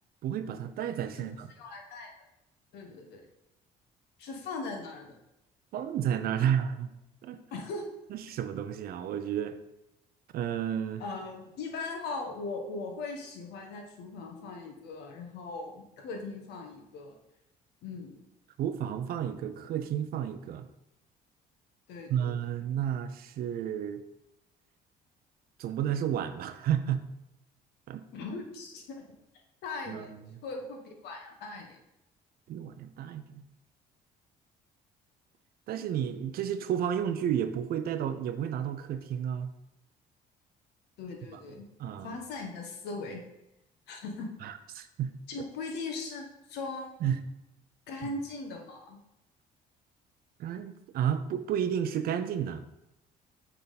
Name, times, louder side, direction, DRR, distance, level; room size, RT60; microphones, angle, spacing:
voice 1, 0.2-1.5 5.7-6.9 7.2-7.4 8.1-9.6 10.3-11.0 18.6-20.7 22.1-24.0 25.6-27.0 27.9-28.0 29.9-30.4 32.5-33.4 35.7-39.5 41.8-42.1 44.4-45.1 47.0-47.2 48.0-48.1 50.4-52.6, right 9 dB, 65° right, 10 dB, 0.5 m, -31 dB
voice 2, 1.2-2.1 2.7-3.2 4.2-5.2 7.5-7.9 11.0-17.2 17.8-18.2 21.9-22.3 28.1-29.0 29.6-30.1 30.4-31.8 41.0-41.6 42.0-43.2 43.9-44.3 45.3-47.1 47.9-49.0, left 3 dB, 80° left, 2 dB, 1.2 m, -39 dB
6.8 x 3.6 x 4.0 m, 0.88 s
cardioid pair, 110°, 17 cm